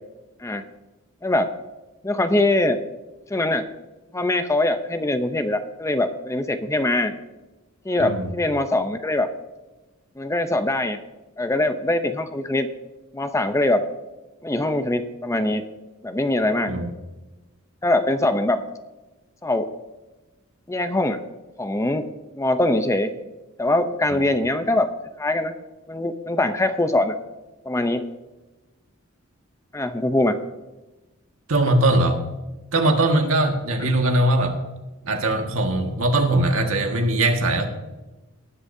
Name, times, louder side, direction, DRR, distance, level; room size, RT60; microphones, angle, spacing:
voice 1, 1.2-1.5 2.0-2.8 3.3-3.7 4.1-7.1 7.9-9.3 10.2-11.0 11.4-12.7 13.1-13.8 14.4-15.6 16.0-16.7 17.8-18.6 19.4-19.7 20.7-21.2 21.6-22.0 22.4-23.1 23.6-24.9 25.2-25.5 25.9-27.1 27.6-28.0 29.7-30.4, left 2 dB, 15° left, 8 dB, 0.6 m, -22 dB
voice 2, 8.0-8.3 16.7-16.9 31.5-32.2 32.7-34.6 35.0-37.7, right 1 dB, 75° right, 3 dB, 1.7 m, -20 dB
18.5 x 10.5 x 2.7 m, 1.1 s
head